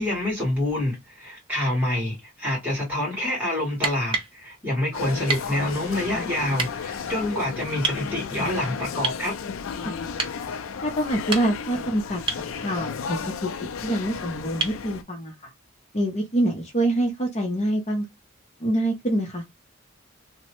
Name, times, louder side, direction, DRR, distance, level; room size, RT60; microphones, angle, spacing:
voice 1, 0.0-9.4, left 1 dB, 10° right, 1.7 m, -27 dB
sound 1, 3.7-4.4 5.3-5.5 6.6-6.7 7.8-8.0 9.0-9.3 10.2-10.4 11.1-11.7 12.3-12.5 14.6-14.8 16.7-16.8, right 4 dB, 25° right, 0.6 m, -28 dB
sound 2, 4.9-15.0, left 6 dB, 75° left, 0.4 m, -33 dB
voice 2, 10.8-12.2 12.6-13.5 13.8-15.3 15.9-18.0 18.6-19.4, right 1 dB, 35° left, 0.7 m, -25 dB
2.9 x 2.1 x 2.9 m
head